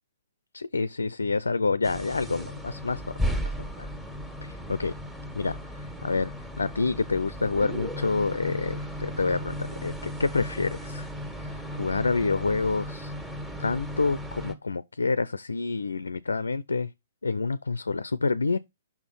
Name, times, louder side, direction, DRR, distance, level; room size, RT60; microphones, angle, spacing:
voice 1, 0.5-3.9 4.4-4.9 5.3-11.1 11.4-13.1 13.6-16.9 17.2-18.6, left 4 dB, 85° left, 0.4 m, -28 dB
sound 1, 1.8-14.5, equal, 5° right, 1.6 m, -35 dB
5.9 x 4.3 x 5.3 m
figure-of-eight pair, 120°, 0 cm